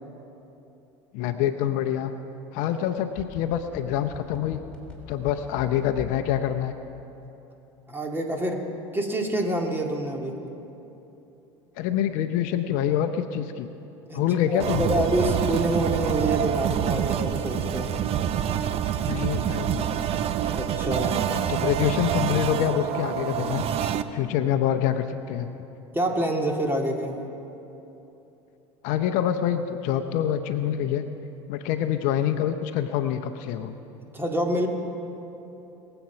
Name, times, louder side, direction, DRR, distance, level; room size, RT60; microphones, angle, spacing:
voice 1, 1.1-2.1 2.5-4.6 5.1-6.7 11.8-13.7 14.1-14.9 19.1-19.9 21.3-23.6 24.1-25.5 28.8-31.1 31.5-33.7, left 10 dB, 60° left, 8 dB, 0.7 m, -26 dB
sound 1, 2.9-6.3 6.6-6.7, left 5 dB, 5° left, 3.4 m, -42 dB
voice 2, 7.9-8.6 8.9-10.4 14.1-14.2 14.5-17.9 20.5-21.3 25.9-27.2 34.1-34.7, right 1 dB, 15° right, 2 dB, 2.2 m, -27 dB
sound 2, 14.6-24.0, right 9 dB, 40° right, 0.6 m, -26 dB
21.5 x 8.0 x 5.9 m, 3.0 s
hypercardioid pair, 75°, 15 cm